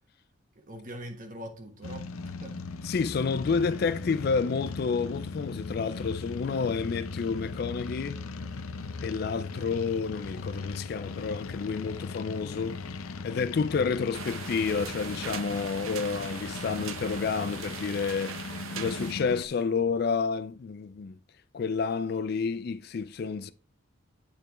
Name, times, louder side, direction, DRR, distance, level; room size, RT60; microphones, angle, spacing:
voice 1, 0.5-2.6 3.6-3.8 9.3-9.8, right 1 dB, 40° right, 1.3 m, -44 dB
sound 1, 1.8-19.5, left 4 dB, 85° left, 0.6 m, -38 dB
voice 2, 2.8-8.2 9.0-12.8 13.2-21.2 21.5-23.5, left 5 dB, 50° left, 0.3 m, -30 dB
sound 2, 14.1-19.1, right 7 dB, 75° right, 0.7 m, -40 dB
10.0 x 4.4 x 3.1 m
head